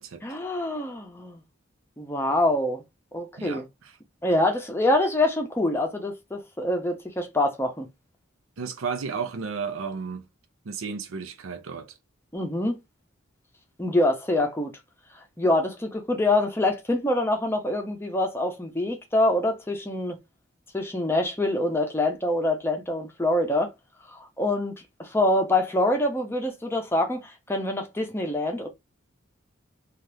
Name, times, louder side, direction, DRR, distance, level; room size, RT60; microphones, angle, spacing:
voice 1, 0.2-1.4 2.0-2.8 3.1-3.7 4.2-7.9 12.3-12.8 13.8-14.7 15.4-20.2 20.7-23.7 24.1-28.7, left 1 dB, 10° left, 0.6 m, -25 dB
voice 2, 8.6-10.3 10.6-11.9, right 5 dB, 85° right, 0.5 m, -33 dB
2.7 x 2.4 x 3.3 m
head